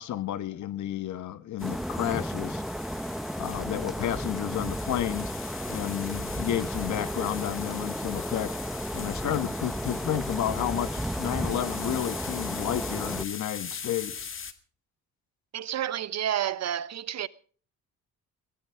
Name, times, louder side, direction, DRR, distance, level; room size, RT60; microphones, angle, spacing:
voice 1, 0.0-2.6 3.4-5.3 5.7-8.5 8.9-14.3, left 11 dB, 75° left, 1.4 m, -31 dB
sound 1, 1.6-14.5, left 6 dB, 45° left, 2.0 m, -41 dB
sound 2, 1.6-13.2, equal, ahead, 0.9 m, -33 dB
voice 2, 15.5-17.3, right 10 dB, 60° right, 1.1 m, -30 dB
22.5 x 17.0 x 3.5 m
cardioid pair, 90°, 30 cm